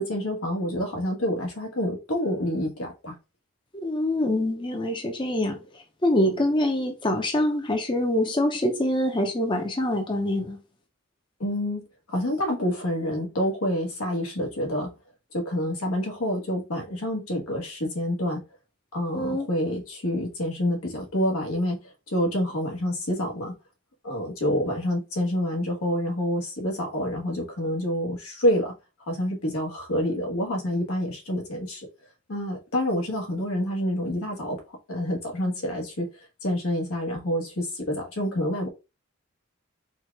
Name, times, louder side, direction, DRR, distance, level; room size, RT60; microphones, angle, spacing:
voice 1, 0.0-3.2 11.4-14.9 15.3-18.4 18.9-23.5 24.0-28.7 29.0-31.9 32.3-34.6 34.9-36.1 36.4-38.7, equal, 90° left, 1.5 m, -27 dB
voice 2, 3.7-5.6 6.0-10.6 19.1-19.5, left 1 dB, 20° left, 0.6 m, -25 dB
4.6 x 2.4 x 4.6 m
head